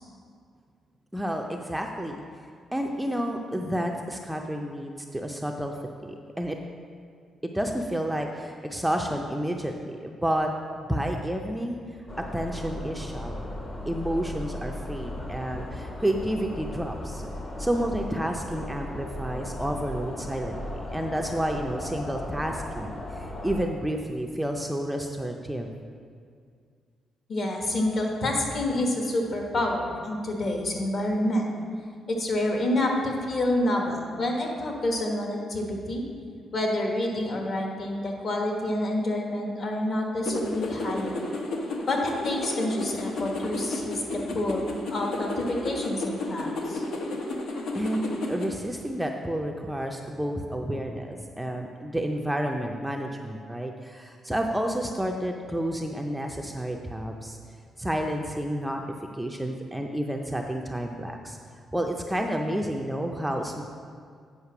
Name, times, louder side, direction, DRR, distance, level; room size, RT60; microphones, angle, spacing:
voice 1, 1.1-2.2 2.7-5.7 6.0-6.5 7.4-10.5 10.8-11.8 12.3-13.5 13.9-17.2 17.6-25.7 47.7-57.4 57.8-58.8 59.1-61.4 61.7-63.6, right 1 dB, 5° right, 2 dB, 0.4 m, -30 dB
sound 1, 12.1-23.7, left 1 dB, 25° left, 0.7 m, -36 dB
voice 2, 27.3-31.5 32.1-36.0 36.5-41.1 41.9-44.0 44.3-46.8, left 1 dB, 45° left, 1 dB, 1.3 m, -28 dB
sound 2, 40.3-48.5, left 2 dB, 70° left, 1.0 m, -32 dB
8.2 x 5.1 x 5.8 m, 2.1 s
cardioid pair, 140°, 0 cm